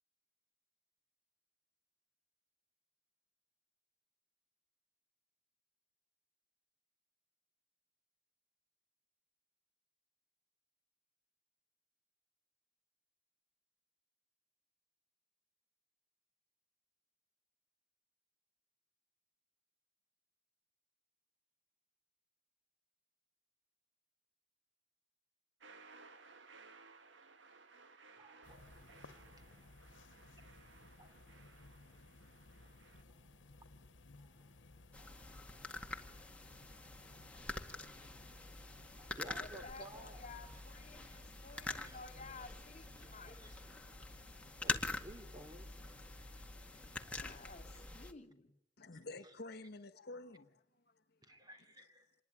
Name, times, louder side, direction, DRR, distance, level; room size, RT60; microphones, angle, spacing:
sound 1, 25.6-33.0, right 4 dB, 80° right, 1.7 m, -61 dB
voice 1, 28.2-38.1 38.5-38.6 39.0-40.2 40.9-41.5 41.7-42.0 43.0-43.6 44.6-45.7 46.2-46.4 46.7-47.2 47.9-48.0 51.2-52.1, right 1 dB, 20° right, 3.3 m, -59 dB
sound 2, 28.4-47.9, left 2 dB, 90° left, 1.2 m, -60 dB
sound 3, 34.9-48.1, left 2 dB, 5° left, 1.9 m, -46 dB
voice 2, 39.3-43.4 47.2-48.5, left 4 dB, 40° left, 2.8 m, -54 dB
voice 3, 48.8-51.4 51.8-51.9, left 2 dB, 60° left, 1.5 m, -51 dB
27.0 x 21.0 x 9.9 m
head